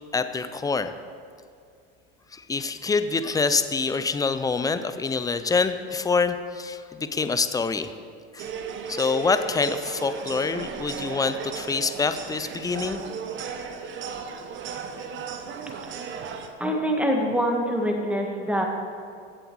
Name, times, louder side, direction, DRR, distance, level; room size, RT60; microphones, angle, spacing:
voice 1, 0.1-0.9 2.3-7.9 8.3-8.5 8.9-13.0, left 4 dB, 10° left, 10 dB, 0.5 m, -26 dB
sound 1, 8.4-16.5, right 6 dB, 40° right, 1.1 m, -35 dB
voice 2, 16.6-18.7, equal, 5° right, 1 dB, 1.8 m, -24 dB
15.5 x 7.9 x 4.7 m, 2.3 s
supercardioid pair, 105°, 30 cm